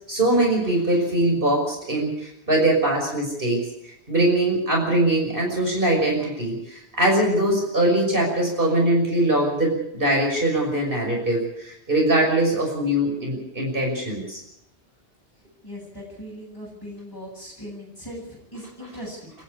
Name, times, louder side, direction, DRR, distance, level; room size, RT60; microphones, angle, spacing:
voice 1, 0.1-14.4, right 1 dB, 55° right, 0 dB, 6.2 m, -22 dB
voice 2, 15.6-19.3, equal, 20° left, -5 dB, 8.2 m, -39 dB
29.5 x 11.0 x 8.5 m, 0.77 s
omnidirectional pair, 1.1 m